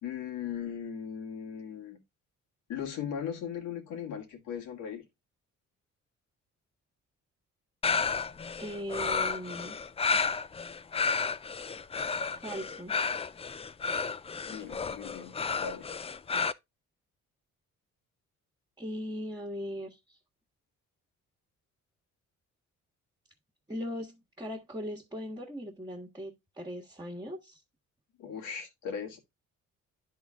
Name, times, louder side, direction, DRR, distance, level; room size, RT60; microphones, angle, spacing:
voice 1, 0.0-2.0 2.7-5.0 14.4-15.9 28.2-29.2, left 8 dB, 85° left, 1.9 m, -38 dB
sound 1, 7.8-16.5, left 5 dB, 20° left, 0.4 m, -32 dB
voice 2, 8.6-9.8 12.4-13.0 18.8-20.0 23.7-27.6, equal, 15° right, 1.5 m, -39 dB
10.5 x 3.9 x 3.5 m
cardioid pair, 90°, 30 cm